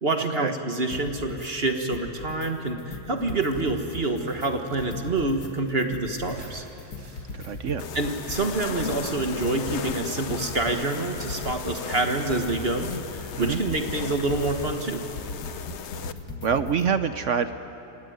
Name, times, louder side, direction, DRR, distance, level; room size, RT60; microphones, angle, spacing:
voice 1, 0.0-6.6 7.9-15.0, right 2 dB, 40° right, 5 dB, 1.6 m, -27 dB
sound 1, 0.9-1.5 1.8-2.5 2.8-5.5 5.8-16.9, left 3 dB, 90° left, 2.3 m, -39 dB
sound 2, 3.2-9.1, right 2 dB, 85° right, 4.5 m, -49 dB
voice 2, 7.3-7.8 13.4-13.6 16.4-17.5, right 7 dB, 60° right, 10 dB, 0.9 m, -26 dB
sound 3, 7.8-16.1, left 6 dB, 55° left, 1.0 m, -36 dB
27.5 x 17.5 x 9.4 m, 2.9 s
omnidirectional pair, 1.7 m